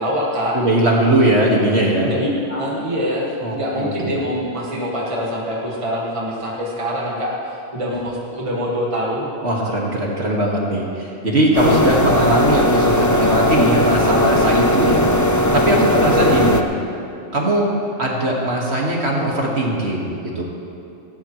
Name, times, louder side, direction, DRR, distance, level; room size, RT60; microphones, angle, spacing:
voice 1, 0.0-0.6 2.0-9.3 15.9-16.3, equal, 25° right, -4 dB, 2.0 m, -24 dB
voice 2, 0.5-2.2 3.4-4.1 9.4-15.0 15.5-16.6 17.3-20.4, right 1 dB, 50° right, -3 dB, 2.3 m, -19 dB
sound 1, 11.5-16.6, left 1 dB, 25° left, 0.3 m, -17 dB
19.0 x 16.5 x 3.3 m, 2.8 s
omnidirectional pair, 1.4 m